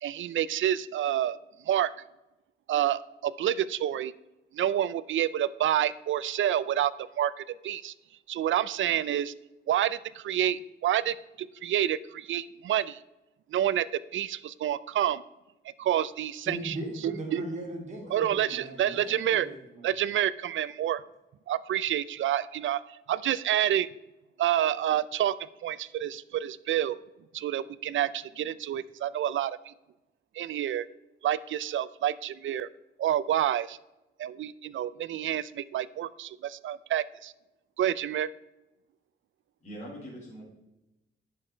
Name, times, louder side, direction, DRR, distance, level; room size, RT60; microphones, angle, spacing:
voice 1, 0.0-1.9 2.7-4.1 4.5-7.9 8.3-9.3 9.7-13.0 13.5-15.2 15.8-16.8 17.0-17.4 18.1-19.5 19.8-21.0 21.5-23.9 24.4-25.4 25.6-27.0 27.3-29.7 30.3-30.9 31.2-32.7 33.0-33.8 34.2-37.3 37.8-38.3, right 11 dB, 70° right, 18 dB, 0.4 m, -28 dB
voice 2, 16.4-19.9, right 2 dB, 35° right, -1 dB, 3.2 m, -38 dB
voice 3, 39.6-40.4, equal, 35° left, -5 dB, 3.5 m, -42 dB
10.0 x 6.6 x 4.4 m, 0.97 s
cardioid pair, 100°, 21 cm